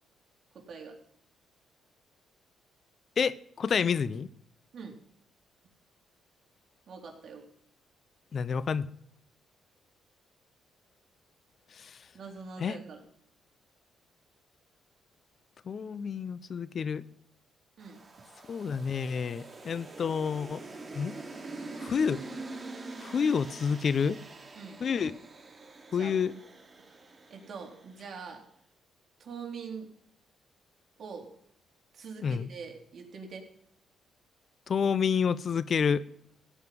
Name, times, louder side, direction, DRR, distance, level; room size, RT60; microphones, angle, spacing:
voice 1, 0.5-1.0 4.7-5.0 6.9-7.4 12.1-13.0 17.8-18.0 24.5-24.8 26.0-26.1 27.3-28.4 29.2-29.9 31.0-31.3 31.9-33.5, right 5 dB, 55° right, 3.5 m, -43 dB
voice 2, 3.2-4.3 8.3-8.9 11.8-12.0 12.6-12.8 15.7-17.0 18.5-20.6 20.9-21.1 21.8-22.2 23.0-24.2 24.8-25.2 25.9-26.3 32.2-32.5 34.7-36.0, left 6 dB, 50° left, 0.8 m, -29 dB
sound 1, 17.8-28.1, right 3 dB, 30° right, 2.8 m, -45 dB
16.0 x 5.8 x 9.3 m
cardioid pair, 90°, 0 cm